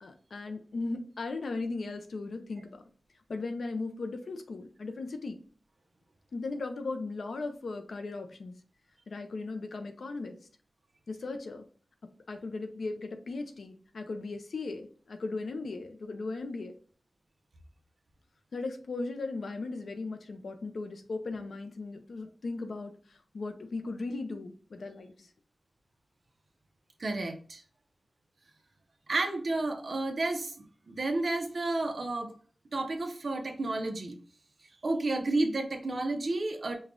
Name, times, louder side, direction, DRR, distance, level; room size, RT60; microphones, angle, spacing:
voice 1, 0.0-2.7 3.3-5.3 6.3-8.5 9.1-10.3 11.1-11.6 12.3-16.7 18.5-25.3, left 3 dB, 80° left, 6 dB, 0.6 m, -37 dB
voice 2, 27.0-27.6 29.1-32.3 32.7-34.2 34.8-36.8, right 2 dB, 55° right, 5 dB, 0.7 m, -31 dB
5.2 x 2.3 x 3.7 m, 0.42 s
wide cardioid pair, 110°, 0 cm